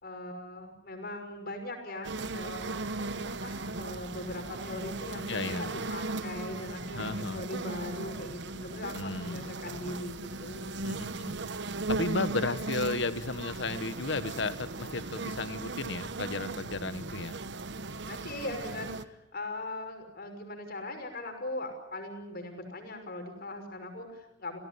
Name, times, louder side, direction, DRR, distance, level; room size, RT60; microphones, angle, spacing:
voice 1, 0.0-2.9 3.2-10.7 18.1-24.6, left 2 dB, 50° left, 5 dB, 5.8 m, -40 dB
sound 1, 2.0-19.0, right 3 dB, 60° right, 1.1 m, -37 dB
voice 2, 5.3-5.6 6.9-7.4 8.9-9.5 10.8-11.3 11.9-17.4, left 3 dB, 65° left, 12 dB, 1.6 m, -34 dB
29.5 x 17.0 x 9.8 m, 0.89 s
head